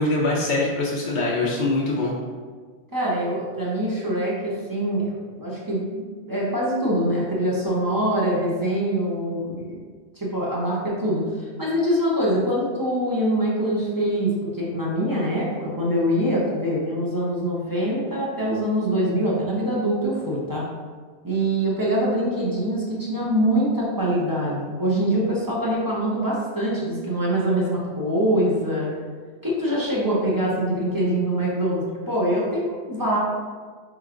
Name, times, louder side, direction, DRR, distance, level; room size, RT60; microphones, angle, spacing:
voice 1, 0.0-2.1, left 2 dB, 55° left, -4 dB, 0.6 m, -23 dB
voice 2, 2.9-9.8 10.2-20.6 21.2-28.9 29.4-33.2, right 1 dB, 20° right, -6 dB, 0.7 m, -24 dB
4.5 x 3.0 x 2.5 m, 1.5 s
omnidirectional pair, 1.2 m